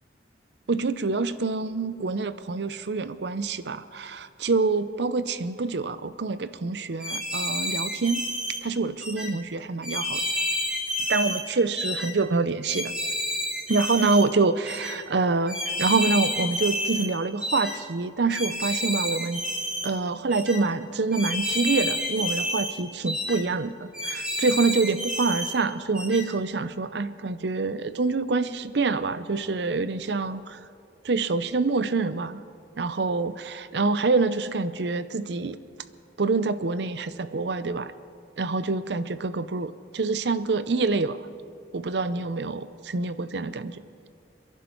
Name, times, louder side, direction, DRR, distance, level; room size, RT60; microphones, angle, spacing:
voice 1, 0.7-8.2 8.6-10.2 11.1-12.9 13.7-19.4 19.8-23.7 24.0-30.6 31.0-32.4 32.8-35.6 36.2-37.9 38.4-41.2 41.7-43.8, right 3 dB, 70° right, 14 dB, 0.6 m, -26 dB
sound 1, 7.0-8.6 9.0-9.3 9.8-11.4 11.8-12.1 12.6-14.2 14.7-14.9 15.5-17.1 17.4-17.8 18.3-19.9 20.3-20.6 21.1-22.7 23.1-23.4 23.9-25.5 26.0-26.2, left 1 dB, 5° right, 1.7 m, -29 dB
29.0 x 11.0 x 4.5 m, 2.4 s
head